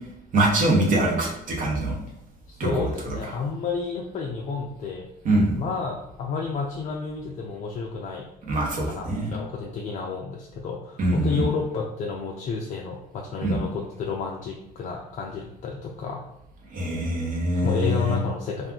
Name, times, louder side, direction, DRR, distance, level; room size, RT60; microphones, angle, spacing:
voice 1, 0.3-2.0 2.6-3.3 5.2-5.5 8.5-9.3 11.0-11.4 13.4-13.6 16.7-18.2, right 1 dB, 50° right, -1 dB, 0.9 m, -23 dB
voice 2, 2.5-5.1 5.6-8.2 8.9-16.2 17.6-18.7, left 5 dB, 45° left, 1 dB, 0.4 m, -31 dB
2.4 x 2.3 x 3.6 m, 0.85 s
cardioid pair, 110°, 17 cm